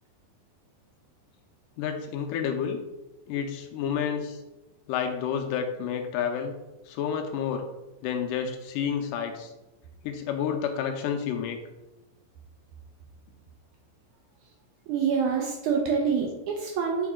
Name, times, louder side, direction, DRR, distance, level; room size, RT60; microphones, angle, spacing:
voice 1, 1.8-2.8 3.3-4.4 4.9-6.6 6.9-7.7 8.0-9.5 10.0-11.6, left 7 dB, 80° left, 4 dB, 2.0 m, -30 dB
voice 2, 14.9-17.1, right 6 dB, 75° right, 1 dB, 1.9 m, -26 dB
5.3 x 5.2 x 3.6 m, 1.0 s
omnidirectional pair, 4.0 m